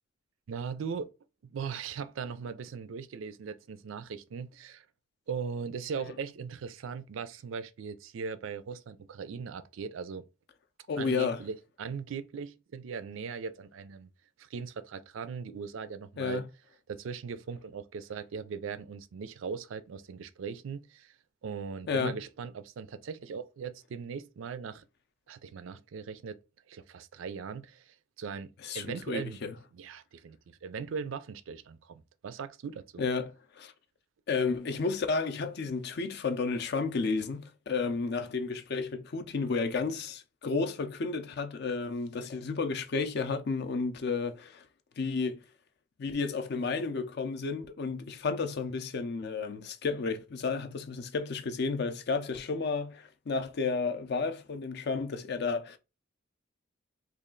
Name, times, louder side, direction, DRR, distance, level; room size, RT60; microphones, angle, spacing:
voice 1, 0.5-1.1 1.4-4.9 5.3-10.2 11.0-14.1 14.4-16.4 16.9-21.2 21.4-24.8 25.3-26.4 26.7-29.4 29.7-33.0, right 6 dB, 70° right, 0.4 m, -39 dB
voice 2, 10.9-11.4 16.2-16.5 21.9-22.2 28.6-29.6 33.0-33.7 34.3-44.7 45.0-45.5 46.0-55.8, left 4 dB, 50° left, 0.4 m, -32 dB
3.1 x 2.4 x 3.7 m
head